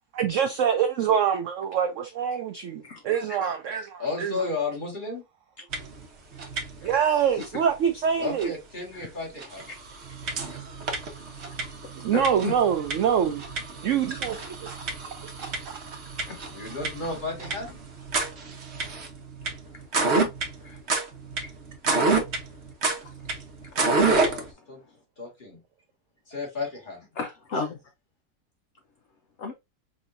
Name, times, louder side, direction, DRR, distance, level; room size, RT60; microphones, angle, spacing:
voice 1, 0.1-4.4 6.8-8.5 12.0-13.4 13.8-14.8 15.2-15.8, right 8 dB, 80° right, 0.6 m, -25 dB
voice 2, 4.0-5.2 8.2-9.6 16.5-17.8 23.7-24.8 25.2-25.6 26.3-27.1, left 3 dB, 30° left, 1.7 m, -33 dB
sound 1, 5.7-6.1 6.3-7.0 7.4-7.5 8.4-8.5 9.0-9.1 9.4-24.5, right 3 dB, 50° right, 1.0 m, -29 dB
voice 3, 12.1-12.5 16.3-16.4 20.6-20.8 21.4-21.5 21.9-22.1 23.0-23.1 24.0-24.1 27.2-27.8 29.4-29.5, left 4 dB, 70° left, 0.6 m, -34 dB
5.1 x 2.8 x 2.5 m
omnidirectional pair, 1.8 m